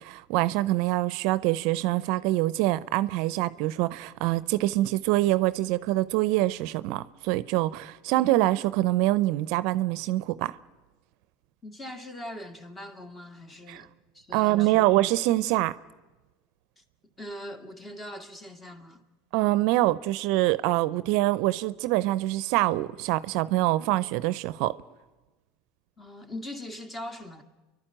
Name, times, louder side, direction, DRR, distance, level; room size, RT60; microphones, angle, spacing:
voice 1, 0.0-10.5 13.7-13.8 14.3-15.7 19.3-24.8, right 17 dB, 65° right, 0.6 m, -25 dB
voice 2, 11.6-14.8 16.8-16.9 17.2-19.0 26.0-27.4, left 1 dB, 20° left, 2.1 m, -41 dB
29.0 x 12.0 x 8.9 m
supercardioid pair, 110°, 0 cm